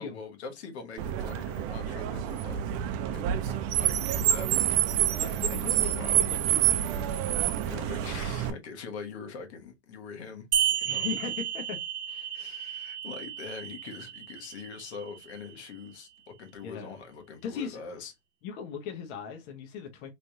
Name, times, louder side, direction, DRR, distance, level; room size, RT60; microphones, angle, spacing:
voice 1, 0.0-2.6 3.1-4.5 5.0-6.3 7.6-10.5 10.8-11.1 12.3-18.1, left 5 dB, 75° left, 1.2 m, -43 dB
Car, 1.0-8.5, right 11 dB, 45° right, 0.6 m, -28 dB
voice 2, 5.1-5.9 6.2-7.4 10.8-11.8 12.1-12.3 16.6-16.9 17.4-18.0 18.4-20.1, left 6 dB, 50° left, 0.9 m, -39 dB
sound 1, 10.5-15.5, right 10 dB, 85° right, 1.1 m, -33 dB
3.3 x 3.2 x 2.7 m
hypercardioid pair, 115°, 33 cm